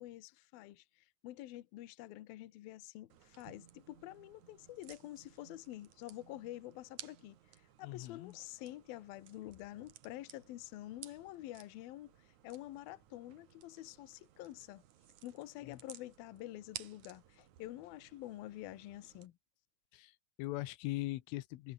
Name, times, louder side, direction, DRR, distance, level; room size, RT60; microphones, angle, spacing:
voice 1, 0.0-7.4 7.8-12.1 12.4-14.8 15.2-19.3, left 15 dB, 70° left, 2.4 m, -48 dB
sound 1, 3.1-19.3, right 11 dB, 65° right, 2.0 m, -57 dB
voice 2, 7.8-8.4 15.6-15.8 19.9-21.7, left 18 dB, 85° left, 3.6 m, -41 dB
omnidirectional pair, 5.6 m